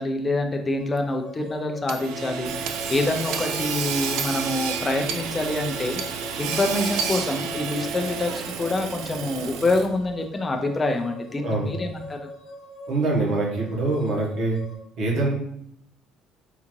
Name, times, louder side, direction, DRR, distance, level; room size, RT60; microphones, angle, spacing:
voice 1, 0.0-6.0 6.4-8.3 8.6-12.3, left 2 dB, 15° left, 3 dB, 0.3 m, -26 dB
sound 1, 0.8-14.8, equal, 50° left, 1.0 m, -42 dB
Hammer / Sawing, 1.9-10.1, right 6 dB, 70° right, 0.3 m, -30 dB
voice 2, 12.9-14.6 15.0-15.3, right 2 dB, 50° right, -2 dB, 0.9 m, -24 dB
3.7 x 2.4 x 3.0 m, 0.70 s
cardioid pair, 170°, 0 cm